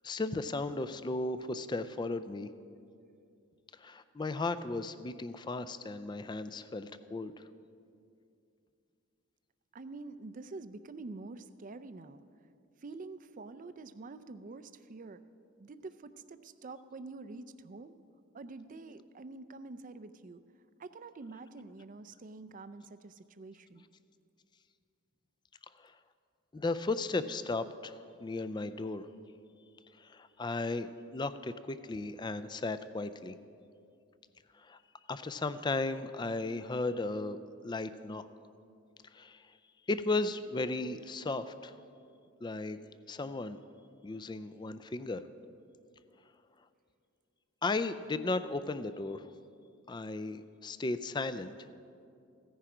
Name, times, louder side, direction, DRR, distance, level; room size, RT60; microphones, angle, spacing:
voice 1, 0.0-2.5 3.8-7.4 25.8-25.9 26.5-29.1 30.0-33.4 34.6-34.8 35.1-38.3 39.1-39.5 39.9-41.7 42.4-42.8 43.1-43.6 44.0-45.2 47.6-49.3 49.9-51.5, left 3 dB, 20° left, 12 dB, 0.4 m, -35 dB
voice 2, 9.7-12.2 12.8-15.2 15.6-18.0 18.3-20.4 20.8-23.9, right 3 dB, 40° right, 13 dB, 0.4 m, -47 dB
15.5 x 10.0 x 4.9 m, 2.5 s
head